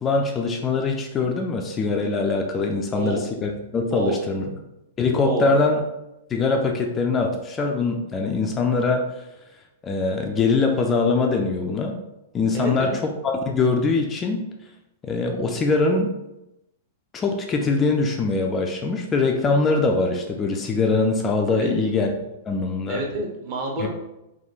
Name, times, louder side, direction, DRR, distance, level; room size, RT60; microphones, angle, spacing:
voice 1, 0.0-4.5 5.0-5.8 6.3-9.1 9.8-12.0 12.3-14.4 15.0-16.1 17.1-22.1 22.5-23.0 23.8-23.9, left 3 dB, 20° left, 2 dB, 0.3 m, -22 dB
voice 2, 12.5-13.0 21.5-21.9 22.9-23.9, right 2 dB, 45° right, -1 dB, 0.8 m, -28 dB
3.4 x 2.2 x 2.7 m, 0.91 s
figure-of-eight pair, 100°, 0 cm